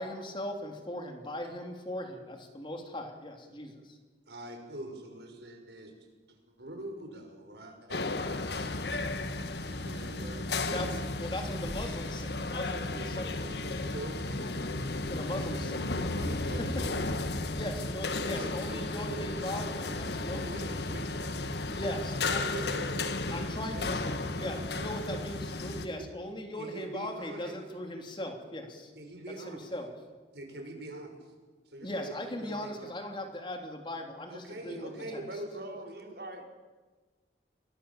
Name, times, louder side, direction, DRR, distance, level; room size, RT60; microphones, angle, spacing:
voice 1, 0.0-4.0 10.6-10.9 11.2-13.5 15.1-16.0 16.8-16.9 17.5-20.4 21.6-22.6 23.3-28.9 29.5-29.9 31.8-35.2, left 1 dB, 30° left, 3 dB, 3.3 m, -39 dB
voice 2, 4.3-5.9 6.6-8.0 9.6-10.9 12.7-14.3 16.1-17.3 18.1-21.1 22.5-24.9 25.9-26.1 26.6-27.6 28.9-29.7 30.3-31.2 31.7-32.9 34.3-36.1, right 1 dB, 75° right, 3 dB, 6.2 m, -44 dB
sound 1, 7.9-25.9, left 2 dB, 70° left, 1.6 m, -34 dB
voice 3, 35.5-36.4, right 1 dB, 60° right, 3 dB, 3.8 m, -43 dB
29.0 x 21.5 x 7.4 m, 1.3 s
head